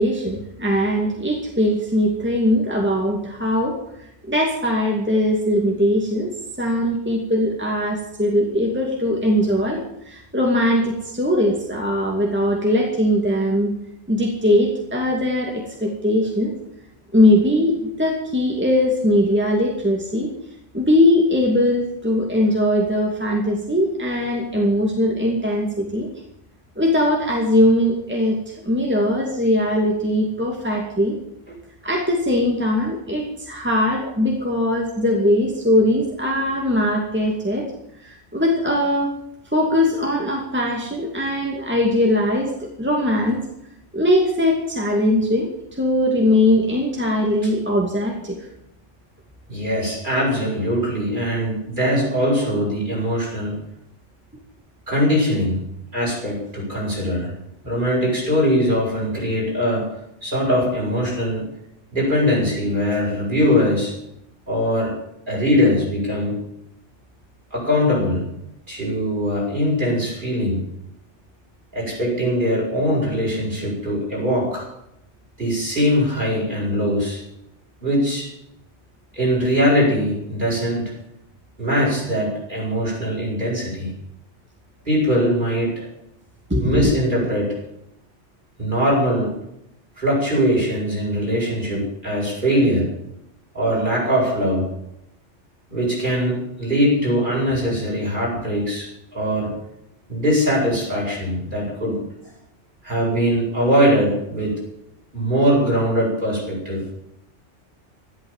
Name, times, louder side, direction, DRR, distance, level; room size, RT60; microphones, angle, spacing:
voice 1, 0.0-6.3 6.6-13.7 14.1-16.5 17.1-20.3 20.7-26.1 26.8-31.2 31.8-37.7 38.0-39.1 39.5-42.5 42.8-43.4 43.9-45.5 45.8-48.5 86.5-86.8, left 1 dB, 10° right, -1 dB, 2.6 m, -20 dB
voice 2, 49.5-53.6 54.9-55.6 55.9-57.3 57.6-59.9 60.2-61.4 61.9-63.9 64.5-64.9 65.3-66.4 67.5-68.3 68.7-70.7 71.7-74.7 75.4-77.2 77.8-78.3 79.1-80.9 81.6-83.9 84.8-85.9 86.6-87.6 88.6-89.3 90.0-92.9 93.5-94.7 95.7-99.6 100.1-102.0 102.8-104.7 105.1-106.8, equal, 40° right, -3 dB, 8.3 m, -21 dB
14.0 x 12.5 x 7.5 m, 0.79 s
omnidirectional pair, 1.2 m